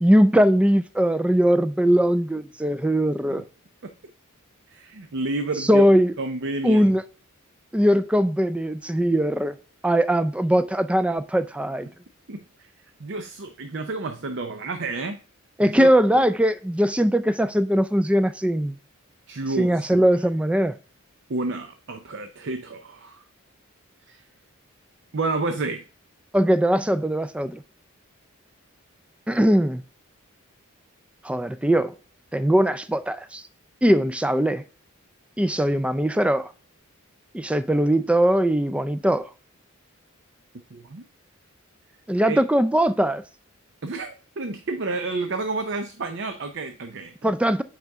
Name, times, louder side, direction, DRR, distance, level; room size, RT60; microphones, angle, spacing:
voice 1, 0.0-3.4 5.6-6.1 6.6-7.0 7.7-9.5 9.8-11.9 15.6-18.8 19.6-20.7 26.3-27.6 29.3-29.8 31.2-31.9 32.3-33.4 33.8-34.6 35.4-36.5 37.3-39.3 42.1-43.2 47.2-47.6, equal, 5° right, 0.3 m, -20 dB
voice 2, 4.7-6.9 12.3-12.4 13.0-15.2 15.6-15.9 16.1-16.2 19.3-20.1 21.3-23.2 24.1-24.2 25.1-25.8 40.7-41.1 42.3-42.4 43.8-47.3, right 3 dB, 55° right, 0.6 m, -30 dB
8.1 x 5.0 x 3.5 m
head